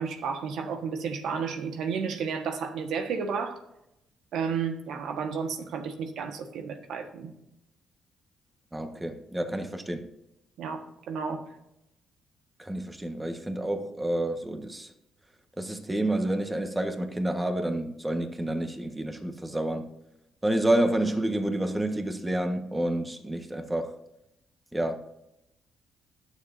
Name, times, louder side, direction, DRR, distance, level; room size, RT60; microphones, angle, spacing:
voice 1, 0.0-3.6 4.3-7.3 10.6-11.4, right 6 dB, 80° right, 1.4 m, -32 dB
voice 2, 8.7-10.1 12.6-14.9 15.6-19.9 20.4-24.0 24.7-25.0, right 1 dB, 15° right, 1.4 m, -29 dB
20.0 x 7.0 x 2.7 m
cardioid pair, 90°, 0 cm